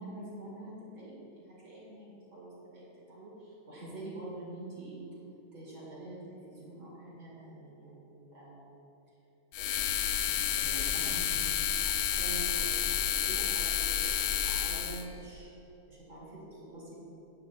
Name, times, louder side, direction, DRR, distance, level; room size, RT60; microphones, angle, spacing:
voice 1, 0.0-5.0 5.5-8.8 9.6-15.5 15.9-16.9, right 2 dB, 40° right, -6 dB, 3.1 m, -46 dB
sound 1, 9.5-15.0, left 9 dB, 75° left, 1.6 m, -30 dB
16.0 x 10.5 x 2.4 m, 3.0 s
omnidirectional pair, 3.4 m